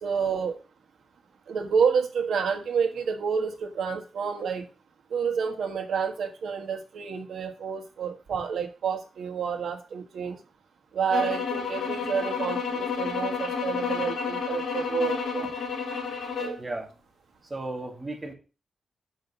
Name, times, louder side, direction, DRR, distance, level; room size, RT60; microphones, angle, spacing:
voice 1, 0.0-0.6 1.5-4.7 5.1-10.4 10.9-15.5 16.4-16.6, right 6 dB, 85° right, 5 dB, 1.4 m, -29 dB
sound 1, 11.1-16.6, left 6 dB, 75° left, 2.8 m, -30 dB
voice 2, 16.6-16.9 17.5-18.3, right 2 dB, 15° right, 0 dB, 2.1 m, -34 dB
5.7 x 5.5 x 6.8 m, 0.34 s
wide cardioid pair, 155°, 0 cm